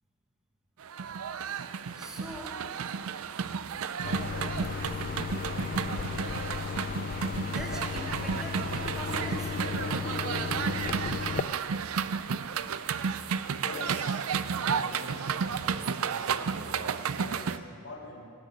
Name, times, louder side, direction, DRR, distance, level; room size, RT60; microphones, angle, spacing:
sound 1, 0.8-17.6, right 6 dB, 70° right, 0.5 m, -32 dB
voice 1, 1.9-2.6 3.4-3.7 7.4-9.6, equal, 5° right, -1 dB, 1.3 m, -43 dB
sound 2, 4.0-11.4, left 6 dB, 40° left, 0.3 m, -35 dB
voice 2, 13.4-18.3, left 2 dB, 65° left, -3 dB, 3.1 m, -45 dB
18.0 x 6.7 x 8.5 m, 2.3 s
head